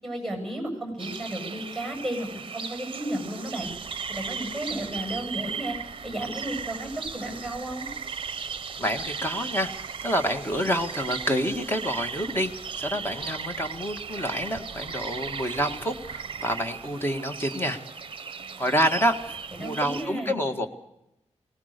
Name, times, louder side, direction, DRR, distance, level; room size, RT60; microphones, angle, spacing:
voice 1, 0.0-3.7 4.1-5.8 6.0-7.9 19.5-20.4, right 1 dB, ahead, 4 dB, 7.8 m, -33 dB
sound 1, 1.0-20.0, right 6 dB, 50° right, 0.7 m, -37 dB
voice 2, 8.8-9.7 10.0-17.8 18.6-19.2 19.6-20.7, equal, 20° left, 5 dB, 1.8 m, -27 dB
22.5 x 19.0 x 6.7 m, 0.82 s
wide cardioid pair, 155°, 12 cm